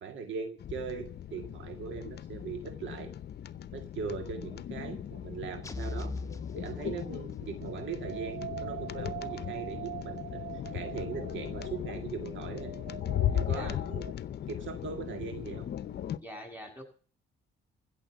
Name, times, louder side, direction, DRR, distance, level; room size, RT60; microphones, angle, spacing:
voice 1, 0.0-3.1 3.7-6.1 6.6-10.4 10.7-12.7 13.3-14.1 14.5-15.7, right 6 dB, 70° right, 6 dB, 2.1 m, -40 dB
sound 1, 0.6-16.2, left 10 dB, 55° left, 0.7 m, -37 dB
sound 2, 5.6-7.5, left 3 dB, 15° left, 1.1 m, -40 dB
sound 3, 7.6-14.1, right 9 dB, 55° right, 2.3 m, -43 dB
voice 2, 16.2-16.8, left 1 dB, 10° right, 3 dB, 7.4 m, -44 dB
15.5 x 7.0 x 8.0 m, 0.41 s
cardioid pair, 90°, 20 cm